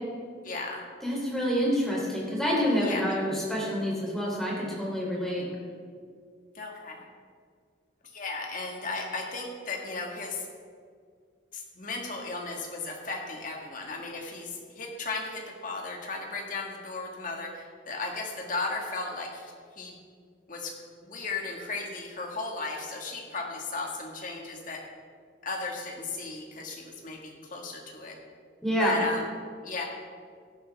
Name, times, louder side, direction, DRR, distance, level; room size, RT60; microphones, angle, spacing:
voice 1, 0.4-0.8 2.8-3.0 6.5-7.0 8.1-10.5 11.5-20.0 20.5-20.7 21.1-24.8 25.4-28.2 28.7-29.3 29.6-29.8, left 3 dB, 40° left, 0 dB, 1.9 m, -35 dB
voice 2, 1.0-5.4 28.6-29.0, equal, ahead, -5 dB, 3.3 m, -27 dB
16.5 x 11.5 x 3.5 m, 2.1 s
head